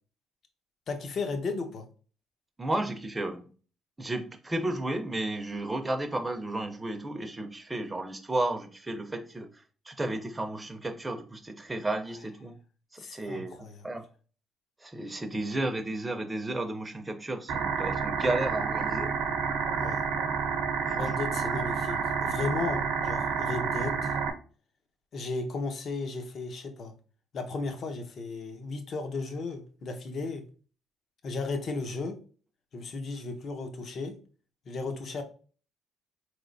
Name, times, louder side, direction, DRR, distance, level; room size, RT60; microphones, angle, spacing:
voice 1, 0.9-1.9 13.0-13.8 19.8-20.0 20.9-24.2 25.1-26.9 27.3-30.4 31.2-32.2 32.7-34.2 34.7-35.2, left 3 dB, 50° left, 0.7 m, -35 dB
voice 2, 2.6-3.5 4.0-9.5 9.9-12.6 12.9-13.6 13.8-14.0 14.8-19.2 20.8-21.1, right 2 dB, 15° right, 0.6 m, -33 dB
sound 1, 17.5-24.3, right 6 dB, 80° right, 0.7 m, -29 dB
4.0 x 3.2 x 2.6 m
cardioid pair, 105°, 0 cm